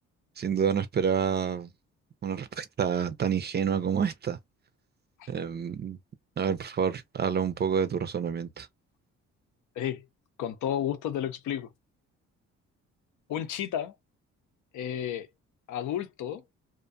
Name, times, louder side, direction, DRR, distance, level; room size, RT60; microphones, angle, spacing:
voice 1, 0.4-1.7 2.2-4.4 5.3-6.0 6.4-8.7, right 7 dB, 35° right, 0.5 m, -28 dB
voice 2, 9.8-10.1 10.4-11.7 13.3-13.9 14.7-15.3 15.7-16.4, left 10 dB, 80° left, 0.6 m, -32 dB
2.5 x 2.2 x 2.6 m
cardioid pair, 90°, 30 cm